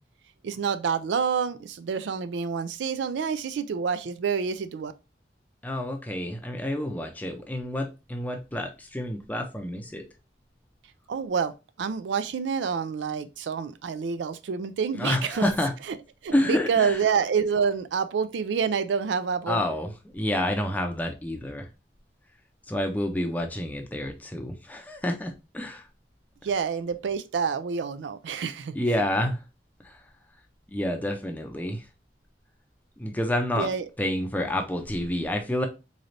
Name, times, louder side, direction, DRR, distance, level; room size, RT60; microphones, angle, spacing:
voice 1, 0.4-4.9 11.1-11.5 11.8-15.4 16.2-19.6 26.4-28.7 33.6-33.9, right 6 dB, 85° right, 0.4 m, -27 dB
voice 2, 5.6-10.0 14.9-15.7 16.3-17.0 19.5-21.7 22.7-25.9 28.7-29.4 29.8-30.0 30.7-31.8 33.0-33.7 34.0-35.7, left 1 dB, 10° left, 0.5 m, -29 dB
3.9 x 3.2 x 2.6 m
head